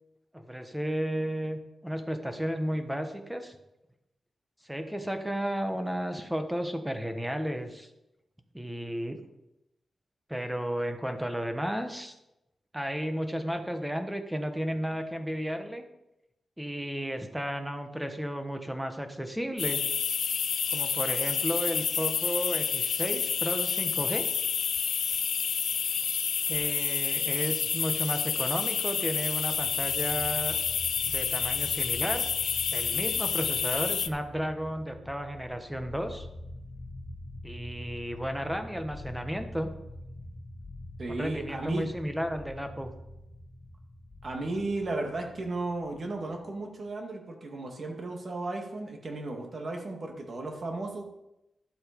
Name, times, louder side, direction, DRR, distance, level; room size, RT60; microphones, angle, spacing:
voice 1, 0.3-3.6 4.6-7.9 8.5-9.2 10.3-12.1 12.7-15.8 16.6-19.8 20.7-24.3 26.5-30.6 31.0-32.2 32.7-36.3 37.4-39.8 41.1-42.9, equal, 5° right, 6 dB, 1.2 m, -33 dB
sound 1, 19.6-34.1, left 7 dB, 90° left, 0.5 m, -29 dB
sound 2, 29.5-46.6, left 1 dB, 25° left, 2.9 m, -45 dB
voice 2, 41.0-41.9 44.2-51.0, right 2 dB, 45° right, 2 dB, 2.1 m, -34 dB
11.5 x 7.9 x 5.2 m, 0.89 s
wide cardioid pair, 110°, 0 cm